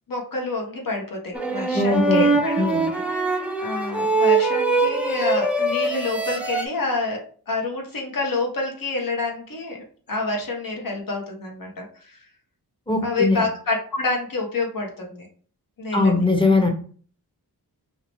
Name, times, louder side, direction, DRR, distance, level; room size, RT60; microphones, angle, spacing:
voice 1, 0.1-9.8 10.1-12.2 13.0-15.3 15.8-16.2, left 3 dB, 60° left, 1 dB, 1.2 m, -28 dB
sound 1, 1.3-6.7, right 3 dB, 5° right, 0.5 m, -22 dB
voice 2, 1.7-2.3 2.6-2.9 12.9-13.4 15.9-16.7, left 2 dB, 15° left, 3 dB, 0.9 m, -20 dB
3.1 x 2.8 x 3.0 m, 0.44 s
cardioid pair, 65°, 38 cm